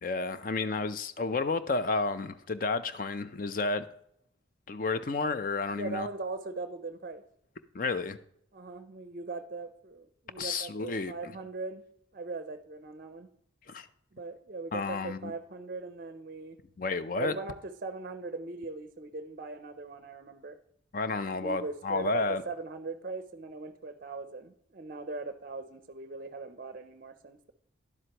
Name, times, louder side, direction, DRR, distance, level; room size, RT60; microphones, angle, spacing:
voice 1, 0.0-3.9 4.7-6.1 7.7-8.2 10.4-11.1 13.7-13.9 14.7-15.3 16.8-17.4 20.9-22.4, left 3 dB, 45° left, 0.5 m, -31 dB
voice 2, 5.7-7.2 8.5-11.8 12.1-13.3 14.1-16.6 17.2-20.6 21.4-27.5, right 3 dB, 45° right, 0.5 m, -40 dB
11.0 x 7.8 x 2.9 m
head